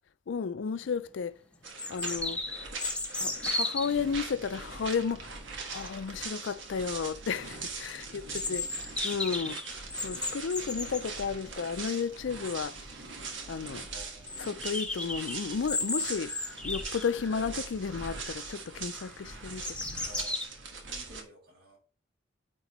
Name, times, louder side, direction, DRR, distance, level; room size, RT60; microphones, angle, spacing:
voice 1, 0.3-1.3 1.9-2.4 3.2-5.3 5.7-9.6 10.0-12.8 13.5-13.9 14.4-16.3 16.6-20.0, left 5 dB, 75° left, 0.4 m, -33 dB
sound 1, 0.8-0.9 1.8-4.0 8.3-11.1 12.7-12.8 13.0-13.1 13.5-13.6 14.3-17.5 17.9-18.4 18.9-20.4, left 2 dB, 5° left, 0.8 m, -35 dB
sound 2, 1.6-21.2, right 4 dB, 85° right, 1.5 m, -42 dB
voice 2, 7.9-8.5 13.9-14.3 20.1-20.3 20.9-21.8, right 1 dB, 55° right, 2.6 m, -52 dB
8.9 x 3.7 x 3.1 m
head